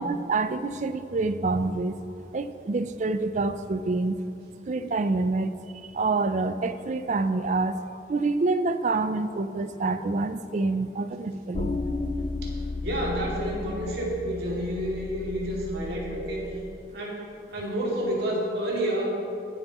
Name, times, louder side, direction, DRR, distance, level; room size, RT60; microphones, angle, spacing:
voice 1, 0.0-2.1 2.3-4.2 4.7-11.8, right 3 dB, 40° right, 11 dB, 0.4 m, -27 dB
sound 1, 11.5-16.6, left 3 dB, 35° left, 0.4 m, -34 dB
voice 2, 12.8-16.5 16.9-17.2 17.5-19.1, right 1 dB, 60° right, -3 dB, 2.3 m, -29 dB
21.0 x 7.7 x 3.0 m, 2.7 s
head